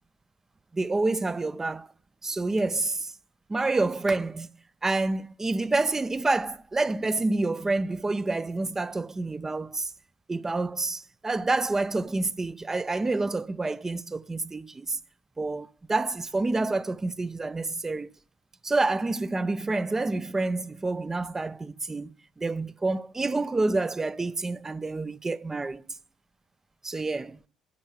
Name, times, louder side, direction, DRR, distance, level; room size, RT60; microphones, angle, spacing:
voice 1, 0.7-1.9 2.2-3.1 3.5-4.5 4.8-9.9 10.3-15.0 15.4-18.1 18.6-25.8 26.8-27.4, right 3 dB, 20° right, 0.6 m, -28 dB
11.5 x 5.4 x 7.9 m
figure-of-eight pair, 50°, 2 cm